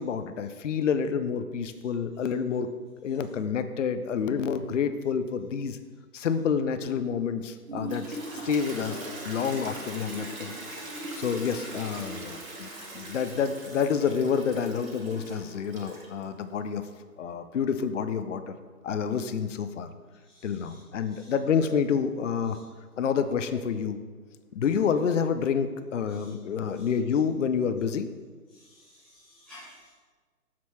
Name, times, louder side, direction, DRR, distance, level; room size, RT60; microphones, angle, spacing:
voice 1, 0.0-2.7 3.0-5.8 6.1-8.2 8.4-10.5 11.1-12.7 12.9-16.8 17.2-18.6 18.8-19.9 20.4-22.6 23.0-24.0 24.5-28.1, left 6 dB, 55° left, 11 dB, 0.5 m, -28 dB
Toilet flush, 7.7-16.2, right 2 dB, 60° right, 1.8 m, -40 dB
voice 2, 20.2-20.8 21.1-21.3 22.5-22.6 26.1-26.3 26.7-26.9 28.5-29.9, left 1 dB, ahead, -14 dB, 0.6 m, -53 dB
7.3 x 4.3 x 4.5 m, 1.4 s
figure-of-eight pair, 135°, 47 cm